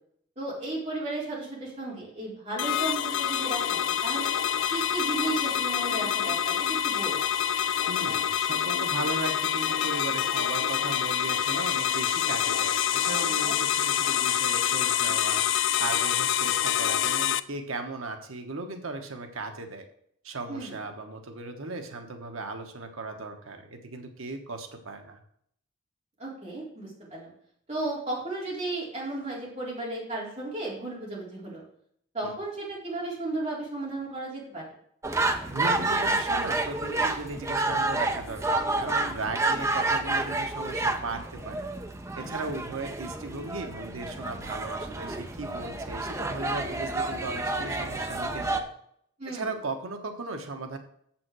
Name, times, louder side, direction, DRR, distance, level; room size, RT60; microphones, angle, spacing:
voice 1, 0.4-3.6 3.8-4.3 4.7-7.2 13.5-13.6 20.5-20.8 26.2-27.3 27.7-31.6 32.1-34.6 49.2-49.4, right 2 dB, 30° right, -5 dB, 3.7 m, -34 dB
sound 1, 2.6-17.4, left 9 dB, 65° left, 0.4 m, -26 dB
voice 2, 7.9-15.4 15.8-19.9 20.2-25.2 32.2-32.3 35.5-41.7 42.2-48.7 49.3-50.8, right 3 dB, 80° right, 5 dB, 1.1 m, -37 dB
sound 2, 35.0-48.6, right 2 dB, 15° right, 0.5 m, -29 dB
7.7 x 5.9 x 6.1 m, 0.67 s
head